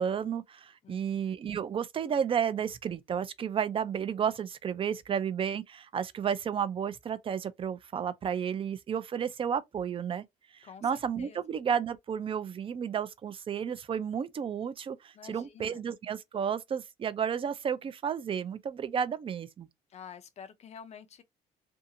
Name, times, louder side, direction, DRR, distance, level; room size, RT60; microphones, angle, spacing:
voice 1, 0.0-10.2 10.5-19.7, right 8 dB, 30° right, 0.4 m, -32 dB
voice 2, 0.8-1.2 10.6-11.4 15.1-15.8 19.9-21.2, left 7 dB, 40° left, 0.6 m, -49 dB
2.6 x 2.3 x 2.7 m
cardioid pair, 110°, 17 cm